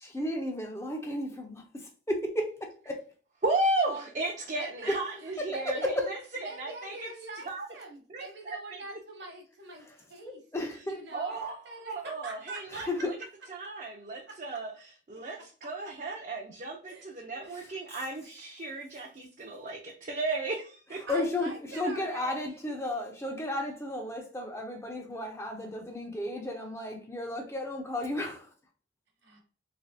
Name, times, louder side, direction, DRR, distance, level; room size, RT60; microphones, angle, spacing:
voice 1, 0.0-3.0 4.9-5.0 5.4-6.1 10.3-11.0 12.7-13.1 17.5-17.7 21.1-28.5, left 1 dB, 15° left, 2 dB, 0.4 m, -33 dB
voice 2, 3.4-6.2 6.6-7.1 7.5-7.7 8.1-9.0 11.1-13.1 13.5-21.0, right 2 dB, 40° right, 0 dB, 0.5 m, -34 dB
voice 3, 4.6-4.9 5.2-5.9 6.4-10.4 10.9-12.9 14.3-14.4 16.9-17.7 21.1-22.7 29.2-29.4, right 2 dB, 65° right, 1 dB, 1.1 m, -44 dB
3.3 x 3.1 x 2.6 m, 0.40 s
head